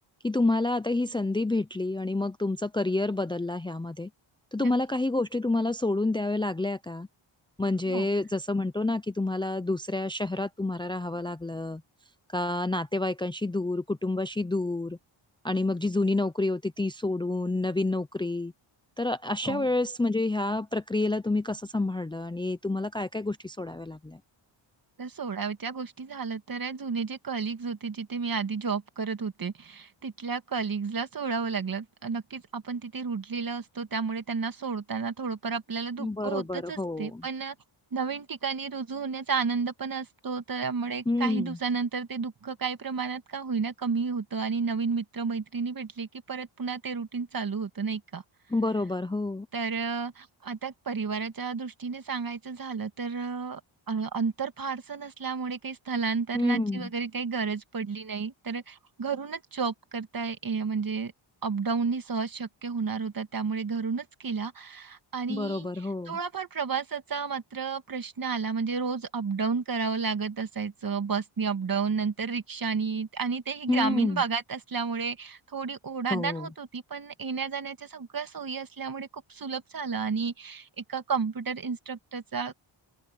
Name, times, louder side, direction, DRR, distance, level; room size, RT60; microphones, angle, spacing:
voice 1, 0.2-4.1 4.5-7.1 7.6-11.8 12.3-15.0 15.4-18.5 19.0-24.2 36.0-37.3 41.1-41.6 48.5-49.5 56.3-56.9 65.3-66.2 73.7-74.2 76.1-76.5, left 2 dB, 10° left, 0.6 m, -28 dB
voice 2, 25.0-37.5 37.9-48.2 49.5-53.6 53.9-61.1 61.4-65.7 66.1-82.5, right 5 dB, 45° right, 2.0 m, -32 dB
open air
wide cardioid pair, 115°, 50 cm